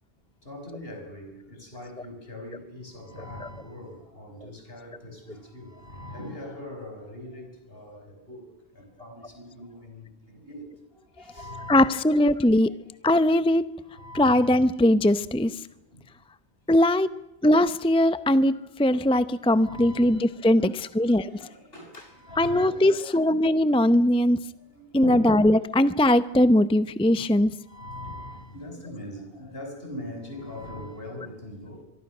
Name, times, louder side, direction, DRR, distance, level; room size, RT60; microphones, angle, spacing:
voice 1, 0.4-8.5 8.8-10.7 11.2-12.3 12.5-13.1 13.9-14.6 15.9-16.0 19.5-23.3 24.7-25.9 27.6-31.8, left 1 dB, 60° left, 5.9 m, -42 dB
voice 2, 11.7-12.7 13.0-13.7 14.1-15.6 16.7-17.1 17.4-21.3 22.4-24.4 24.9-27.5, left 1 dB, 5° left, 0.6 m, -20 dB
25.0 x 23.5 x 6.1 m
omnidirectional pair, 1.1 m